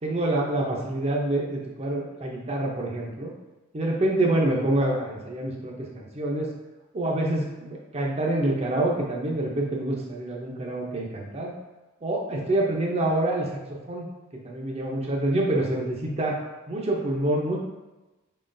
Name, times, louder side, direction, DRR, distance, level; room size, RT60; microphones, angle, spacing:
voice 1, 0.0-3.3 3.7-6.5 6.9-11.5 12.0-14.1 14.4-16.4 16.7-17.6, right 1 dB, 30° right, -1 dB, 0.6 m, -26 dB
4.8 x 3.7 x 2.6 m, 1.1 s
head